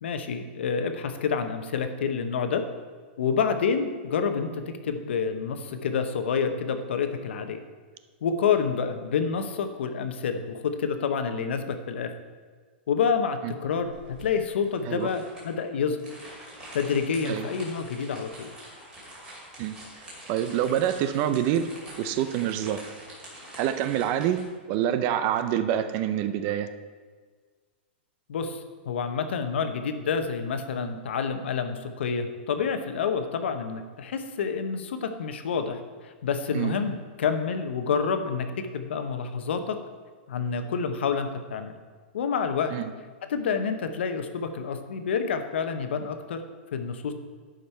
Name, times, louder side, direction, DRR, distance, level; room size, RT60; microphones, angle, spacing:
voice 1, 0.0-2.6 3.2-7.6 8.2-12.1 12.9-16.0 16.7-18.5 28.3-39.8 40.3-41.7 42.1-42.7 43.3-46.4 46.7-47.1, left 6 dB, 80° left, 8 dB, 0.9 m, -28 dB
sound 1, 13.8-24.4, right 1 dB, 15° right, 2.4 m, -45 dB
voice 2, 20.3-21.7 22.0-22.9 23.6-24.4 24.7-26.7 36.5-36.8 42.7-42.9, right 10 dB, 30° right, 11 dB, 0.4 m, -26 dB
11.0 x 5.3 x 4.5 m, 1.5 s
supercardioid pair, 165°, 6 cm